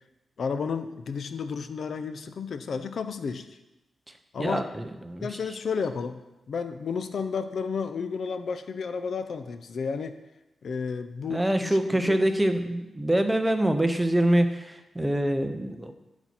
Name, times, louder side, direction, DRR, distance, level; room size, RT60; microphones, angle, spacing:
voice 1, 0.4-3.5 4.3-4.7 5.2-6.2 6.5-10.2 10.6-12.2, left 5 dB, 55° left, 10 dB, 0.5 m, -32 dB
voice 2, 4.4-5.3 11.3-15.9, right 1 dB, 5° right, 7 dB, 0.6 m, -25 dB
8.9 x 4.1 x 5.9 m, 1.0 s
wide cardioid pair, 155°, 0 cm